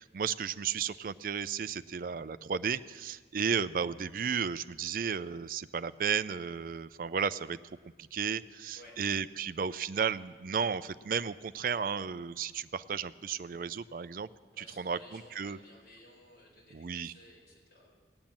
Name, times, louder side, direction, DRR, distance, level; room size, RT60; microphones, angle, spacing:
voice 1, 0.0-7.6 8.0-14.3 14.6-15.6 16.7-17.1, right 6 dB, 50° right, 15 dB, 0.4 m, -34 dB
voice 2, 14.5-18.0, left 1 dB, 60° left, -3 dB, 4.6 m, -56 dB
18.0 x 8.9 x 7.4 m, 1.4 s
head